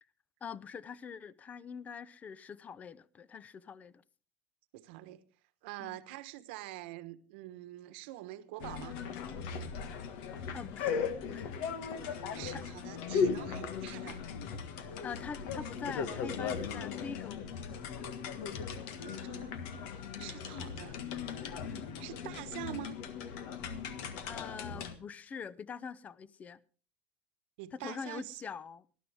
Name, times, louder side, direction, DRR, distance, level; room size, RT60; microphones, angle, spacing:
voice 1, 0.4-4.0 5.8-6.0 10.5-11.6 12.5-12.6 14.8-17.5 20.1-20.4 21.6-21.9 24.2-26.6 27.7-28.9, left 6 dB, 25° left, 0.6 m, -44 dB
voice 2, 4.7-5.2 5.6-9.0 12.1-14.2 18.9-19.6 20.2-21.0 22.0-23.0 27.6-28.4, right 16 dB, 75° right, 1.2 m, -45 dB
sound 1, 8.6-24.9, left 6 dB, 70° left, 1.6 m, -38 dB
19.0 x 12.0 x 3.5 m
supercardioid pair, 130°, 6 cm